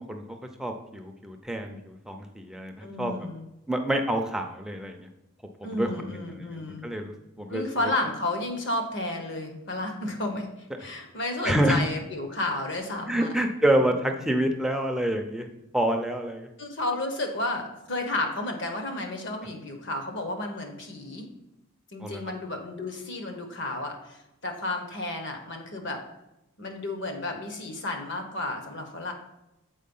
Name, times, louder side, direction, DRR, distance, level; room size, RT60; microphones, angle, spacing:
voice 1, 0.0-3.1 3.7-5.0 5.7-7.6 11.4-11.8 13.1-15.5 15.7-16.5 22.0-22.2, right 1 dB, ahead, 3 dB, 0.5 m, -27 dB
voice 2, 2.8-3.4 5.6-6.9 7.5-13.4 13.8-14.0 16.6-21.3 21.9-26.0 26.6-29.1, left 2 dB, 55° left, 5 dB, 1.1 m, -32 dB
7.4 x 4.6 x 5.4 m, 0.92 s
head